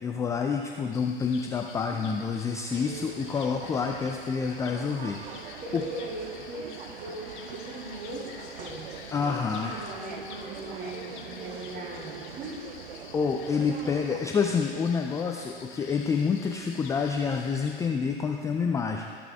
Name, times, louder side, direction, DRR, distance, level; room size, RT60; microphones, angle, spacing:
voice 1, 0.0-5.8 9.1-9.8 13.1-19.1, left 5 dB, 10° left, 3 dB, 0.3 m, -28 dB
sound 1, 0.9-17.9, left 6 dB, 55° left, 0.8 m, -48 dB
voice 2, 1.9-2.2 5.3-8.3 8.6-8.9 9.2-12.9 13.8-14.5, right 1 dB, 30° right, -3 dB, 2.3 m, -40 dB
sound 2, 2.7-14.2, right 7 dB, 70° right, 0.6 m, -43 dB
14.0 x 6.7 x 3.4 m, 2.1 s
figure-of-eight pair, 80°, 29 cm